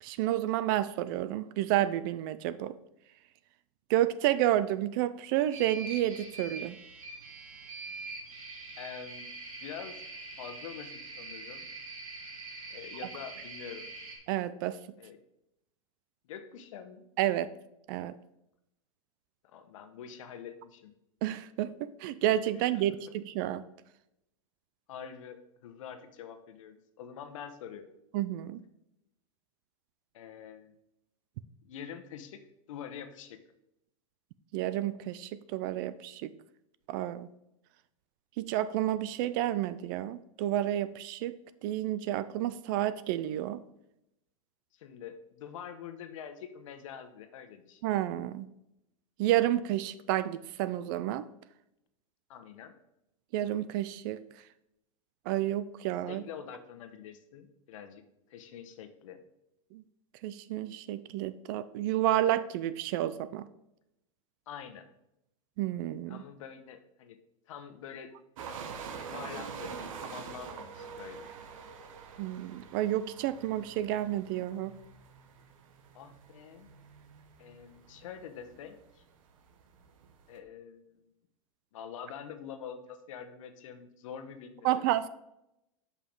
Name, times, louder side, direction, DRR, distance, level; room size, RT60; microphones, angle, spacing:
voice 1, 0.0-2.7 3.9-6.8 14.3-14.8 17.2-17.5 17.9-18.1 21.2-23.6 28.1-28.6 34.5-36.3 36.9-37.3 38.4-41.4 41.6-43.6 47.8-48.5 49.2-51.3 53.3-54.2 55.3-56.2 59.7-59.8 60.2-63.5 65.6-66.2 72.2-74.7 84.6-85.1, right 13 dB, 40° right, 15 dB, 0.4 m, -30 dB
sound 1, 5.5-14.2, right 3 dB, 90° right, 2.5 m, -44 dB
voice 2, 8.8-9.3 9.6-9.9 10.4-10.9 11.2-11.7 12.7-13.9 15.0-15.2 16.2-17.0 19.4-20.9 22.7-22.8 24.9-28.0 30.1-30.8 31.6-32.4 32.7-33.4 44.7-47.8 52.3-52.7 56.1-58.0 58.3-59.2 64.5-64.9 66.1-67.2 67.5-68.1 69.0-71.3 75.9-76.7 77.4-79.0 80.3-81.1 81.7-85.0, left 8 dB, 70° left, 8 dB, 1.1 m, -45 dB
sound 2, 68.4-80.4, right 6 dB, 75° right, 1.1 m, -46 dB
7.3 x 5.6 x 4.6 m, 0.84 s
supercardioid pair, 155°, 17 cm